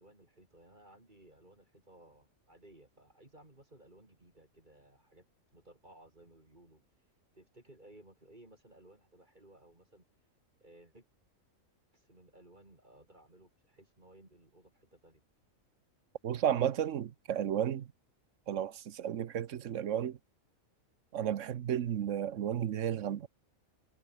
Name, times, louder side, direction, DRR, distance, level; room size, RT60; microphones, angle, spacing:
voice 1, 0.0-5.3 5.5-6.8 7.3-10.1 10.6-11.1 11.9-15.2, right 1 dB, 35° right, 4.2 m, -59 dB
voice 2, 16.2-17.9 18.5-20.2 21.1-23.3, right 10 dB, 65° right, 1.2 m, -33 dB
omnidirectional pair, 1.4 m